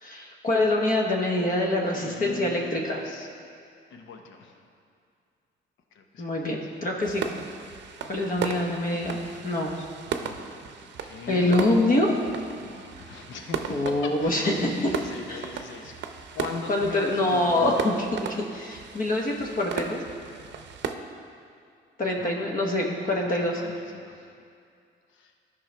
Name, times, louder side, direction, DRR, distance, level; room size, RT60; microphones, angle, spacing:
voice 1, 0.0-3.0 6.2-7.3 8.0-9.2 9.4-9.7 11.3-12.2 13.7-14.7 15.3-15.4 16.7-20.0 22.0-23.6, left 1 dB, 45° left, 0 dB, 1.1 m, -25 dB
voice 2, 1.9-3.3 3.9-4.6 5.9-6.3 6.6-6.7 8.2-9.9 10.2-10.8 11.0-11.6 12.6-15.9 16.3-17.7 22.2-22.3 23.4-24.4 25.1-25.3, left 4 dB, 80° left, 4 dB, 0.9 m, -40 dB
sound 1, 7.0-20.9, right 7 dB, 65° right, 0.6 m, -36 dB
12.5 x 5.4 x 3.4 m, 2.4 s
cardioid pair, 90°, 20 cm